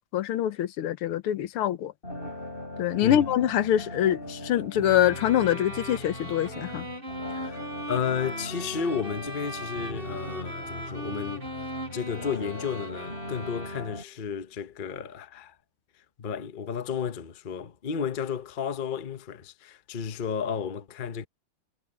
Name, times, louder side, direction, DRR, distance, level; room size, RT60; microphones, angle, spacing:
voice 1, 0.1-1.9 2.8-6.9, left 11 dB, 85° left, 1.8 m, -25 dB
sound 1, 2.0-14.0, left 1 dB, 25° left, 6.5 m, -39 dB
sound 2, 5.0-14.2, equal, 25° right, 4.5 m, -39 dB
voice 2, 7.3-7.6 7.9-11.5 11.9-15.5 16.2-21.3, left 7 dB, 50° left, 0.6 m, -32 dB
omnidirectional pair, 2.4 m